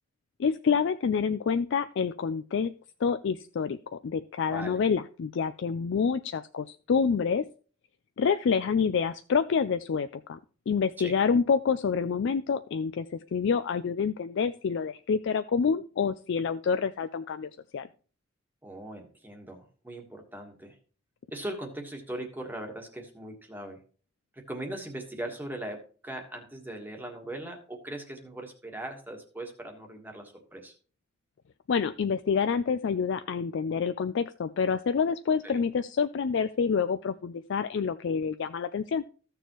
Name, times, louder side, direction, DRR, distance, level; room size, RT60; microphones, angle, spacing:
voice 1, 0.4-2.7 3.0-7.4 8.2-10.4 10.7-17.9 31.7-39.1, left 6 dB, 60° left, 12 dB, 0.4 m, -27 dB
voice 2, 4.5-4.8 11.0-11.2 18.6-20.8 21.3-23.8 24.3-30.7 35.4-35.6, right 1 dB, 10° right, 3 dB, 1.4 m, -40 dB
14.5 x 6.8 x 3.0 m, 0.39 s
head